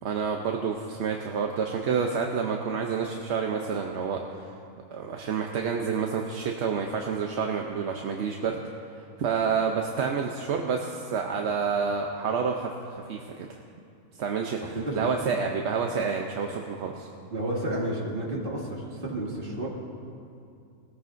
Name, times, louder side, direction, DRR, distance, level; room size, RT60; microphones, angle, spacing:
voice 1, 0.0-4.2 4.9-8.6 9.2-13.6 14.2-17.1, right 6 dB, 60° right, 2 dB, 0.9 m, -29 dB
voice 2, 14.7-15.1 17.3-19.7, right 1 dB, 40° right, -5 dB, 2.5 m, -31 dB
19.5 x 14.0 x 2.6 m, 2.4 s
omnidirectional pair, 1.5 m